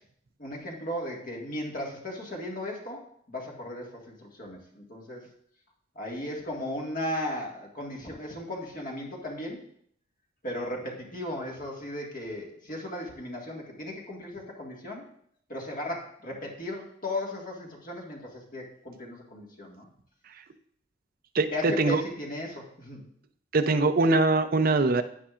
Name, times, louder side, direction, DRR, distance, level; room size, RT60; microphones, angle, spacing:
voice 1, 0.4-5.3 6.0-9.7 10.4-15.1 15.5-19.9 21.5-23.0, left 1 dB, 45° left, -1 dB, 1.9 m, -36 dB
voice 2, 21.3-22.0 23.5-25.0, right 3 dB, 50° right, 10 dB, 0.5 m, -22 dB
10.0 x 9.4 x 2.5 m, 0.64 s
head